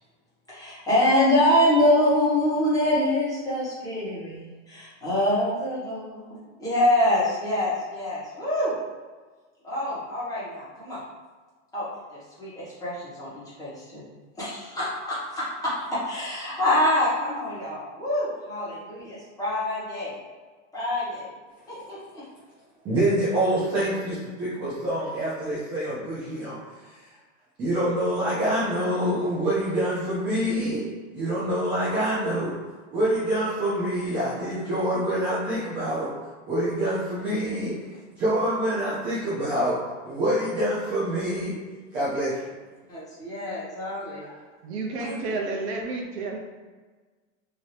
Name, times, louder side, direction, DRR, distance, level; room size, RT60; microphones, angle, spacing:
voice 1, 0.5-8.7 9.6-11.0 11.7-14.1 14.3-20.2 20.7-21.3 21.7-22.2 42.9-44.3 45.0-45.2, left 1 dB, 10° left, -10 dB, 1.2 m, -25 dB
voice 2, 22.8-26.6 26.9-27.1 27.6-30.8 31.1-32.5 32.9-36.1 36.5-39.8 40.0-41.5 41.9-42.4 44.2-44.4, right 1 dB, 15° right, -9 dB, 0.3 m, -26 dB
voice 3, 44.6-46.4, right 3 dB, 60° right, 1 dB, 0.7 m, -31 dB
2.8 x 2.7 x 3.2 m, 1.4 s
supercardioid pair, 145°, 38 cm